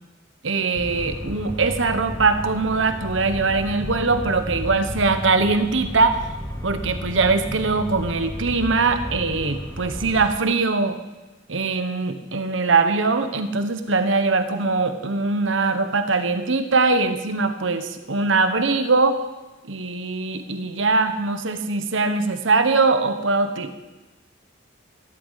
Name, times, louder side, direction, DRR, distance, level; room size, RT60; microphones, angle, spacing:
voice 1, 0.4-6.2 6.6-11.0 11.5-19.2 19.6-23.7, right 3 dB, 75° right, 9 dB, 1.2 m, -21 dB
sound 1, 0.7-10.3, equal, 20° left, 1.9 m, -33 dB
15.0 x 13.5 x 5.8 m, 1.1 s
head